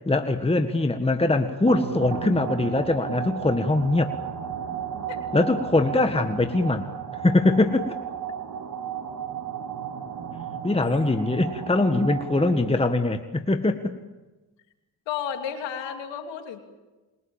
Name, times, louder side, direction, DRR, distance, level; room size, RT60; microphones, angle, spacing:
voice 1, 0.1-4.1 5.3-6.9 7.2-7.9 10.6-13.9, left 2 dB, 15° left, 7 dB, 1.7 m, -22 dB
sound 1, 1.7-13.0, right 8 dB, 50° right, 2.6 m, -34 dB
voice 2, 15.1-16.6, left 8 dB, 80° left, 5 dB, 3.1 m, -33 dB
28.0 x 23.0 x 7.3 m, 1.1 s
supercardioid pair, 65°, 43 cm